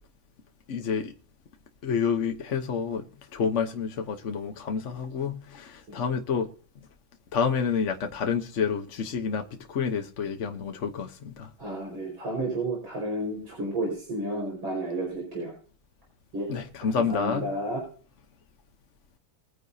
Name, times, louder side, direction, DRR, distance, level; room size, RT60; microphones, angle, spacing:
voice 1, 0.7-1.1 1.8-3.1 3.3-6.5 7.3-11.5 16.5-17.5, left 6 dB, 45° left, 1.1 m, -29 dB
voice 2, 11.6-15.5 16.3-16.5 16.9-17.8, right 1 dB, 80° right, 5.7 m, -31 dB
22.5 x 9.8 x 2.7 m
omnidirectional pair, 2.1 m